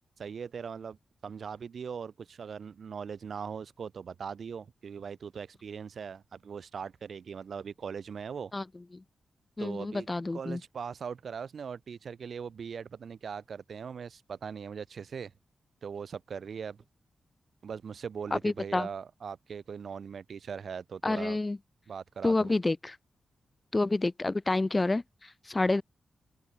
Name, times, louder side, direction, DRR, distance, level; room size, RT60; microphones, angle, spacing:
voice 1, 0.2-1.0 1.2-8.5 9.6-10.1 10.3-15.3 15.8-16.8 17.6-21.4 21.9-22.5, right 6 dB, 70° right, 3.9 m, -40 dB
voice 2, 9.6-10.6 18.3-18.9 21.0-21.6 22.2-23.0 23.7-25.0 25.5-25.8, left 2 dB, 30° left, 1.5 m, -28 dB
open air
cardioid pair, 55°, 0 cm